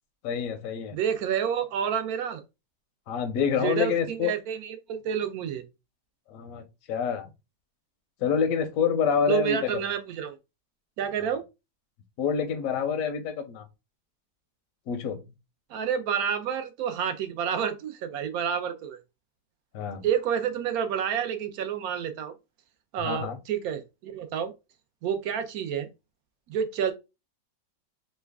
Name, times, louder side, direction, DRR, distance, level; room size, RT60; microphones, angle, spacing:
voice 1, 0.2-1.0 3.1-4.3 6.3-6.6 6.9-7.3 8.2-9.7 12.2-13.6 14.9-15.2 19.7-20.0 23.0-23.4, left 7 dB, 70° left, 0.8 m, -27 dB
voice 2, 0.9-2.4 3.6-5.6 9.3-10.4 11.0-11.4 15.7-19.0 20.0-22.3 22.9-24.5 25.0-25.9 26.5-26.9, right 8 dB, 70° right, 0.9 m, -29 dB
3.2 x 2.1 x 3.3 m
omnidirectional pair, 1.8 m